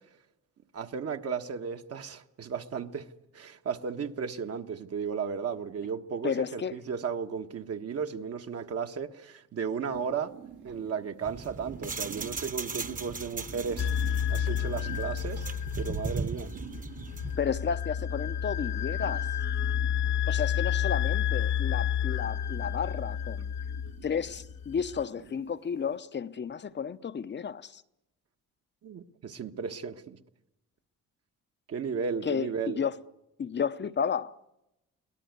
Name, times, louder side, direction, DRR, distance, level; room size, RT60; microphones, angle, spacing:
voice 1, 0.7-3.1 3.3-10.3 10.6-15.5 15.8-16.5 28.8-30.2 31.7-32.8, right 6 dB, 55° right, 1.4 m, -35 dB
voice 2, 6.2-6.7 17.4-19.3 20.3-23.5 24.0-27.8 32.2-33.0 33.4-34.4, left 7 dB, 35° left, 0.8 m, -32 dB
sound 1, 9.9-26.0, right 8 dB, 85° right, 3.7 m, -51 dB
sound 2, 11.2-17.4, right 4 dB, 25° right, 1.1 m, -38 dB
sound 3, 13.8-25.0, left 9 dB, 65° left, 1.3 m, -30 dB
24.0 x 18.0 x 9.6 m
cardioid pair, 90°, 30 cm